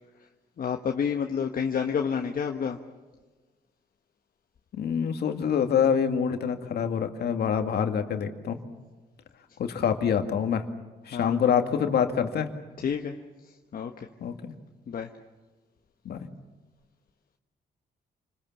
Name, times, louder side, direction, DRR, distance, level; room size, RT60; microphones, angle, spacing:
voice 1, 0.6-2.8 11.1-11.4 12.8-13.1 13.7-13.9 14.9-15.1, left 7 dB, 55° left, 4 dB, 1.4 m, -29 dB
voice 2, 4.7-8.6 9.6-10.6 11.1-12.5 14.2-14.5 16.1-16.3, left 7 dB, 75° left, 6 dB, 2.1 m, -26 dB
28.5 x 21.0 x 7.4 m, 1.2 s
cardioid pair, 85°, 17 cm